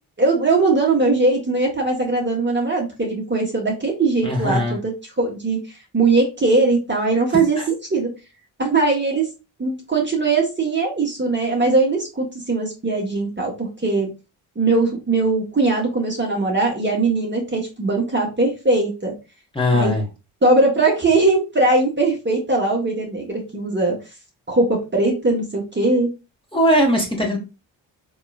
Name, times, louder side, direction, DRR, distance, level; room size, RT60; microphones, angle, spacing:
voice 1, 0.2-4.9 5.2-7.6 7.9-8.1 8.6-9.3 9.6-14.1 14.5-19.1 19.7-19.9 20.4-24.0 24.5-26.1, right 3 dB, 25° right, -1 dB, 1.4 m, -20 dB
voice 2, 4.2-4.8 7.6-7.7 19.5-20.0 26.5-27.4, equal, 10° left, -1 dB, 1.6 m, -19 dB
3.6 x 3.2 x 2.4 m, 0.28 s
hypercardioid pair, 45°, 48 cm